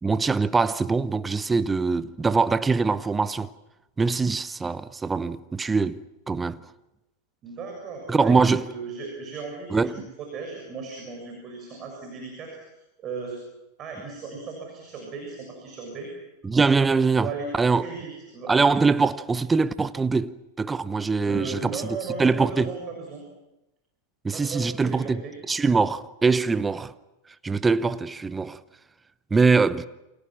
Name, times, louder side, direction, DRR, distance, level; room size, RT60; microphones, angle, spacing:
voice 1, 0.0-3.5 4.0-6.6 8.1-8.6 9.7-10.0 16.4-17.9 18.5-21.8 22.2-22.7 24.2-26.9 27.4-28.6 29.3-29.9, right 4 dB, 15° right, 0.8 m, -23 dB
voice 2, 7.4-8.3 8.6-13.4 13.8-16.1 17.2-18.5 21.2-23.2 24.3-25.3, right 4 dB, 30° right, 7.2 m, -36 dB
29.5 x 26.0 x 6.1 m
figure-of-eight pair, 90°, 0 cm